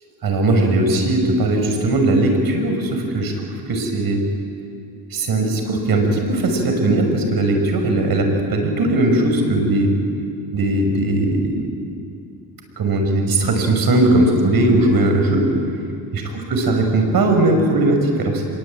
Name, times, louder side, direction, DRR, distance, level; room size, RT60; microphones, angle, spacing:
voice 1, 0.2-3.3 3.7-4.2 5.1-10.0 10.5-11.7 12.8-15.5 16.1-18.4, right 2 dB, 60° right, 3 dB, 6.1 m, -18 dB
25.5 x 23.0 x 9.0 m, 2.4 s
cardioid pair, 105°, 40 cm